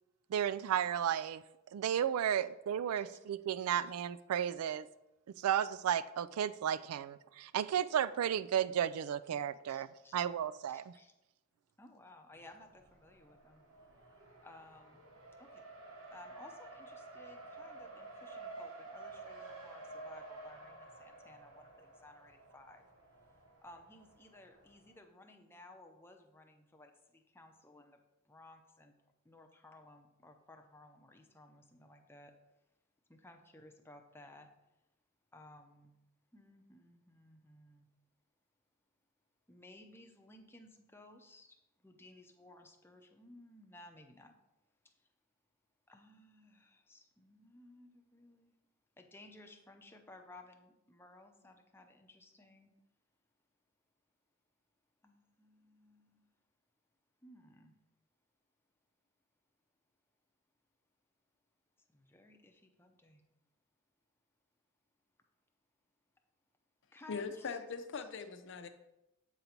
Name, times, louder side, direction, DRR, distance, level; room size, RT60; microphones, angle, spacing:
voice 1, 0.3-1.4 1.7-4.9 5.4-10.9, right 9 dB, 90° right, 16 dB, 0.3 m, -33 dB
voice 2, 9.7-10.2 10.7-11.1 11.8-13.6 14.4-15.1 15.4-15.6 16.1-22.8 23.6-28.0 28.3-28.9 29.2-32.3 33.1-34.5 35.3-36.0 36.3-37.9 39.5-41.6 41.8-44.3 45.9-48.5 49.0-52.7 55.0-56.2 57.2-57.8 61.9-63.2 66.9-67.7, left 2 dB, 10° left, 4 dB, 0.6 m, -58 dB
Race car auto racing, 12.3-24.9, right 3 dB, 70° right, 1.1 m, -52 dB
voice 3, 67.1-68.7, left 5 dB, 60° left, 8 dB, 0.6 m, -41 dB
8.2 x 4.0 x 4.4 m, 0.92 s
head